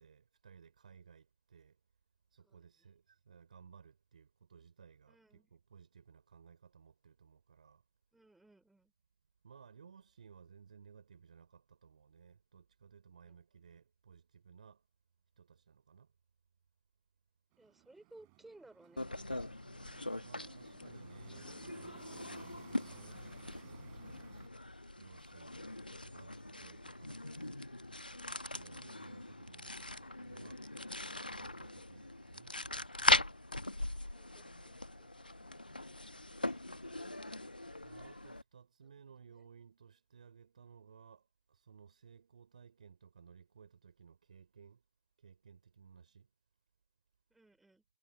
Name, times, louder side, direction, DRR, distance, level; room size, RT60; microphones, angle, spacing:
voice 1, 0.0-1.8 2.3-7.8 9.4-14.8 15.4-16.1 20.2-24.2 25.0-27.6 28.5-30.6 31.3-32.5 37.8-44.8 45.2-46.3, right 6 dB, 60° right, 4.8 m, -59 dB
voice 2, 2.4-2.9 5.1-5.5 8.1-8.9 13.2-13.4 17.6-19.1 20.4-20.6 39.3-39.5 47.3-47.8, right 2 dB, 5° right, 3.8 m, -62 dB
sound 1, 17.5-24.5, right 39 dB, 30° right, 6.3 m, -61 dB
sound 2, 19.0-38.4, left 1 dB, 85° left, 1.1 m, -40 dB
figure-of-eight pair, 120°, 5 cm